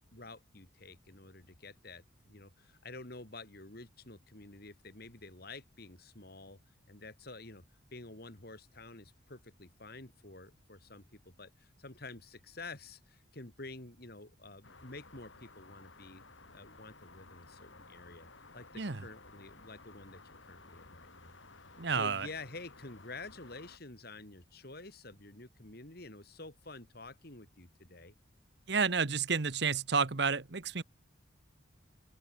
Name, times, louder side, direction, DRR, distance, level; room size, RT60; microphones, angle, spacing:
voice 1, 0.1-6.6 6.9-16.2 16.5-18.3 18.5-21.3 21.6-28.1, left 3 dB, 50° left, 2.7 m, -49 dB
sound 1, 14.6-23.8, left 3 dB, 70° left, 4.5 m, -56 dB
voice 2, 21.8-22.3 28.7-30.8, right 5 dB, 55° right, 1.1 m, -30 dB
open air
head